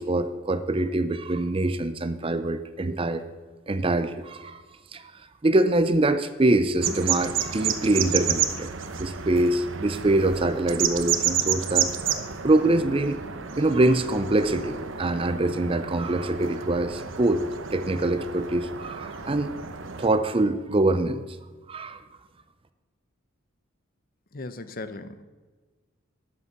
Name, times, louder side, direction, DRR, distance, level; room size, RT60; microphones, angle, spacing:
voice 1, 0.0-3.2 3.7-4.6 4.9-5.1 5.4-8.7 9.0-13.2 13.6-17.4 17.7-19.5 20.0-21.2 21.7-22.0, right 2 dB, 25° right, 12 dB, 0.5 m, -24 dB
sound 1, 6.8-20.1, right 8 dB, 65° right, 1.0 m, -30 dB
voice 2, 24.3-25.2, left 2 dB, 45° left, 12 dB, 0.8 m, -37 dB
12.5 x 8.5 x 7.0 m, 1.3 s
head